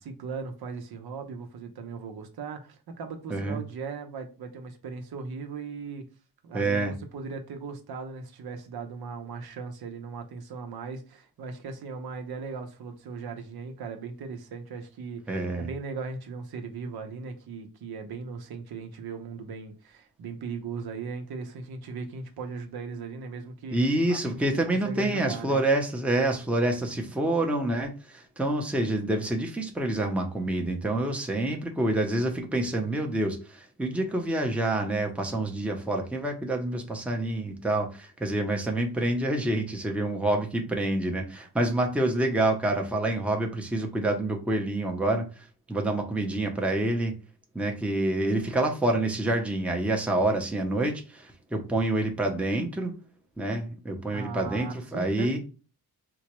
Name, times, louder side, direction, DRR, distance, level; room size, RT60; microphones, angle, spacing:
voice 1, 0.0-6.0 6.4-25.6 54.1-55.4, right 5 dB, 75° right, 0.7 m, -38 dB
voice 2, 3.3-3.6 6.5-6.9 15.3-15.7 23.7-47.2 47.5-52.9 53.4-55.4, right 1 dB, 5° right, 0.6 m, -27 dB
3.8 x 2.2 x 2.9 m
wide cardioid pair, 105°, 38 cm